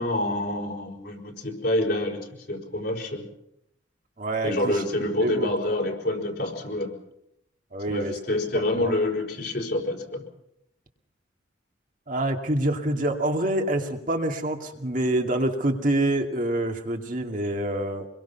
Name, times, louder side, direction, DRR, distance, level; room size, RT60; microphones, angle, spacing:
voice 1, 0.0-3.3 4.4-6.9 7.9-10.2, left 1 dB, 60° left, 1 dB, 4.9 m, -27 dB
voice 2, 4.2-4.8 5.2-5.5 7.7-8.1 8.8-8.9 12.1-18.1, right 1 dB, 45° right, 3 dB, 2.3 m, -26 dB
26.0 x 22.0 x 5.8 m, 0.78 s
head